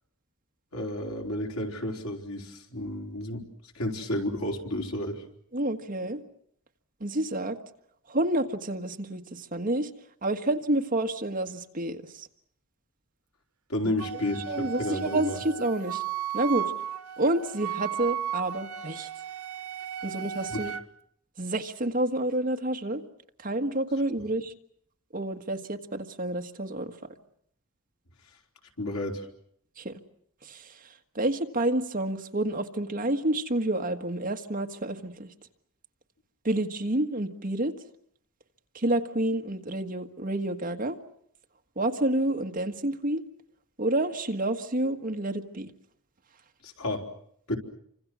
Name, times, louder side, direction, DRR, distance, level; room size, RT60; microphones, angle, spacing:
voice 1, 0.7-3.4 3.7-5.2 13.7-15.4 20.5-20.7 28.8-29.3 46.6-47.0 47.5-47.6, left 1 dB, 80° left, 1 dB, 4.2 m, -31 dB
voice 2, 5.5-6.2 7.0-7.6 8.1-9.9 10.2-12.3 13.8-13.9 14.5-16.0 16.3-16.7 17.2-19.1 20.0-20.7 21.4-23.0 23.4-24.5 25.1-27.0 29.8-30.0 30.4-30.8 31.1-35.3 36.4-37.7 38.7-41.0 41.7-43.2 43.8-45.7, right 1 dB, 40° right, 5 dB, 1.7 m, -29 dB
Wind instrument woodwind instrument, 14.0-20.8, right 9 dB, 85° right, 1.0 m, -35 dB
29.5 x 25.5 x 6.3 m, 0.70 s
head